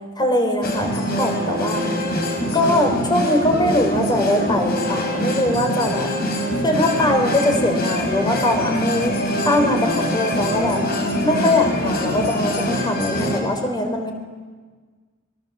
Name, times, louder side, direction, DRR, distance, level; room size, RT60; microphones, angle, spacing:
voice 1, 0.2-1.8 2.5-6.1 6.6-9.1 9.4-10.8 11.2-14.1, left 1 dB, 20° left, 4 dB, 4.0 m, -21 dB
sound 1, 0.6-13.4, equal, 50° left, 4.9 m, -23 dB
28.5 x 22.5 x 7.4 m, 1.5 s
head